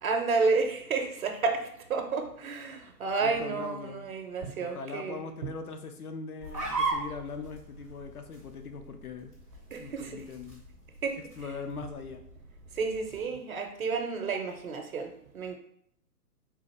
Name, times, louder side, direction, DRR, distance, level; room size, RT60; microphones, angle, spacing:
voice 1, 0.0-5.2 9.7-10.2 11.0-11.2 12.8-15.6, right 4 dB, 60° right, 0.7 m, -31 dB
voice 2, 3.2-4.1 4.6-9.3 9.8-10.6 11.4-12.2, left 5 dB, 65° left, 0.6 m, -41 dB
sound 1, 6.4-13.3, right 3 dB, 10° left, 0.4 m, -39 dB
3.8 x 2.5 x 4.3 m
figure-of-eight pair, 130°, 48 cm